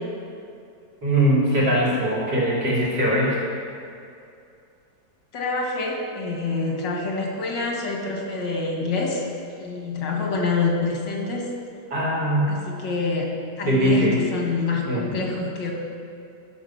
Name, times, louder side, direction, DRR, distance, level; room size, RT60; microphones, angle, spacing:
voice 1, 1.0-3.5 11.9-12.6 13.6-14.2 14.9-15.2, right 1 dB, 90° right, -7 dB, 3.6 m, -21 dB
voice 2, 5.3-9.2 9.6-11.5 12.5-13.3 13.6-15.7, left 3 dB, 85° left, 0 dB, 2.2 m, -26 dB
11.5 x 6.1 x 5.8 m, 2.5 s
omnidirectional pair, 1.9 m